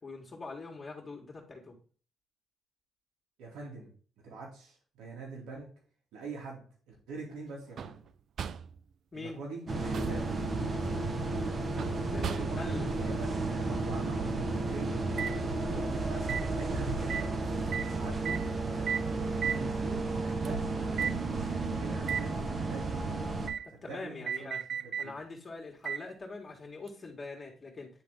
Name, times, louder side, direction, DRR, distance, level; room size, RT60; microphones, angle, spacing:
voice 1, 0.0-1.8 9.1-9.4 11.9-12.9 23.6-24.6 25.0-27.9, left 3 dB, 35° left, 0 dB, 2.1 m, -43 dB
voice 2, 3.4-3.9 4.2-5.7 6.1-8.0 9.1-10.2 12.3-15.0 15.6-17.3 17.9-21.2 21.8-23.3 23.7-25.1, right 3 dB, 85° right, -2 dB, 2.6 m, -44 dB
sound 1, 7.8-8.1 8.4-8.8 9.7-10.3 11.8-12.7 15.2-15.4 16.3-16.5 17.1-17.3 17.7-17.9 18.2-18.5 18.9-19.1 19.4-19.7 20.4-20.5 21.0-21.2 22.0-22.3 23.5-23.7 24.3-25.1 25.8-26.1 26.9-27.0, right 7 dB, 60° right, 0.4 m, -35 dB
sound 2, 9.7-23.5, right 3 dB, 40° right, 1.2 m, -33 dB
9.6 x 3.5 x 3.9 m, 0.40 s
cardioid pair, 90°, 0 cm